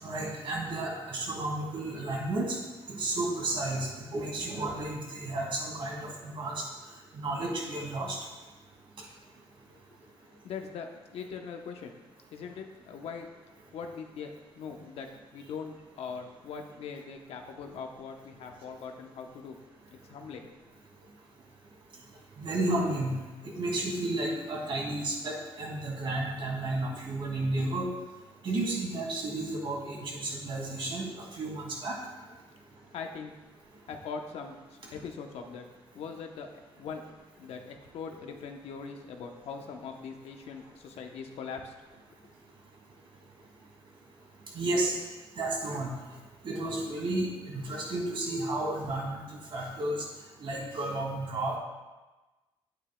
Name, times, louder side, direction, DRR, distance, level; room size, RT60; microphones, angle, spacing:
voice 1, 0.0-2.6 2.9-6.6 7.1-8.2 22.4-23.2 23.5-27.9 28.4-32.0 44.5-44.9 45.4-45.9 46.4-49.2 49.5-50.0 50.4-51.6, right 2 dB, 55° right, -1 dB, 2.2 m, -32 dB
voice 2, 10.4-11.9 12.3-13.3 13.7-19.5 19.9-20.5 32.9-33.3 33.9-35.6 35.9-36.5 36.8-37.0 37.4-41.7, left 5 dB, 75° left, 4 dB, 0.8 m, -41 dB
9.1 x 8.8 x 2.2 m, 1.2 s
cardioid pair, 100°, 10 cm